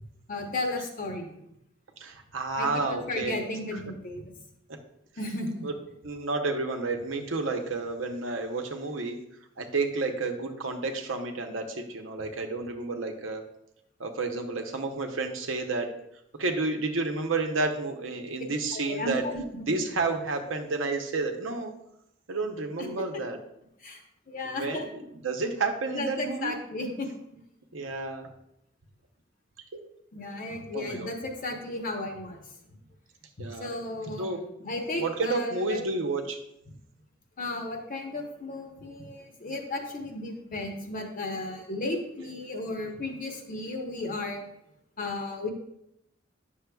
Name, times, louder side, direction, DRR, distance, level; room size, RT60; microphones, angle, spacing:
voice 1, 0.3-1.4 2.6-4.3 5.2-5.7 18.7-19.8 22.8-22.9 23.8-24.0 24.3-24.9 25.9-27.1 30.1-32.4 33.5-34.3 34.6-35.8 37.4-44.4 45.0-45.5, left 2 dB, 45° left, 3 dB, 1.0 m, -34 dB
voice 2, 2.0-3.4 3.7-3.8 5.6-5.7 6.0-9.2 9.6-13.4 14.0-15.9 16.4-19.2 19.7-21.7 22.3-23.4 24.4-24.8 25.2-26.6 27.7-28.3 29.7-29.8 30.7-31.1 33.4-33.8 34.2-34.4 35.0-36.4, right 3 dB, 90° right, 4 dB, 0.8 m, -30 dB
9.0 x 6.4 x 2.3 m, 0.79 s
head